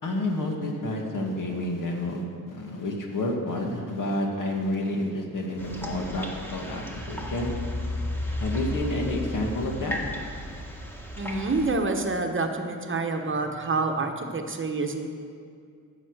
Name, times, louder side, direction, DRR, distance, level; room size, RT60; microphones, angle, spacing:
voice 1, 0.0-7.5 8.4-10.0, left 1 dB, 60° left, 1 dB, 2.2 m, -29 dB
sound 1, 5.6-11.7, left 1 dB, 5° left, 1.5 m, -34 dB
voice 2, 11.2-15.1, right 3 dB, 35° right, 4 dB, 1.1 m, -27 dB
15.0 x 6.9 x 6.5 m, 2.3 s
cardioid pair, 105°, 36 cm